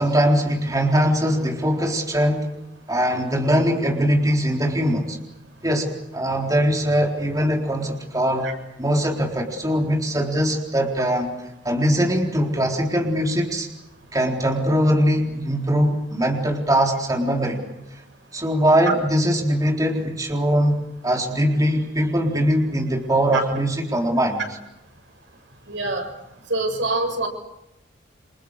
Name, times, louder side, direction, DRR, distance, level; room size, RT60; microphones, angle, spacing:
voice 1, 0.0-2.5 2.9-5.2 5.6-8.5 8.8-11.3 11.6-13.7 14.1-17.6 18.3-24.4, equal, 20° right, 0 dB, 3.9 m, -21 dB
voice 2, 25.7-26.1 26.5-27.3, right 2 dB, 85° right, 4 dB, 7.7 m, -24 dB
29.0 x 27.5 x 6.6 m, 0.90 s
head